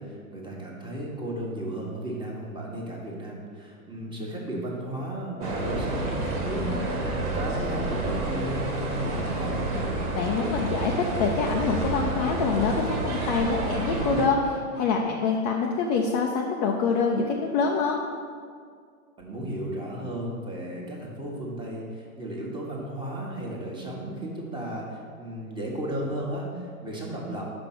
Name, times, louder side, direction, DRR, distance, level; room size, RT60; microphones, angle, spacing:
voice 1, 0.0-9.6 19.2-27.5, right 1 dB, 10° right, -2 dB, 1.2 m, -34 dB
sound 1, 5.4-14.3, right 2 dB, 80° right, 1.9 m, -29 dB
voice 2, 10.1-10.9 11.2-18.0, left 4 dB, 30° left, 1 dB, 0.4 m, -25 dB
6.0 x 5.1 x 6.0 m, 2.1 s
hypercardioid pair, 125°, 43 cm